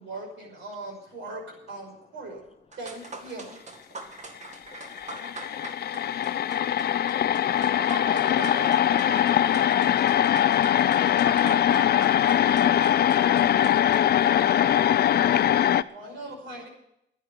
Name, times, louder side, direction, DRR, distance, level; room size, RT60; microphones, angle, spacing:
voice 1, 0.0-1.4 1.7-2.4 2.8-3.6 7.7-9.8 15.9-16.7, right 2 dB, 70° right, 1 dB, 5.6 m, -39 dB
sound 1, 2.4-2.5 2.7-15.7, right 3 dB, 35° right, 2.0 m, -44 dB
voice 2, 3.8-5.3, left 5 dB, 30° left, 10 dB, 0.8 m, -60 dB
sound 2, 4.5-4.6 4.8-15.8, left 10 dB, 55° left, 0.5 m, -22 dB
voice 3, 5.0-5.6 10.6-12.4, equal, 20° right, 0 dB, 4.4 m, -43 dB
10.0 x 10.0 x 9.4 m, 0.77 s
cardioid pair, 90°, 20 cm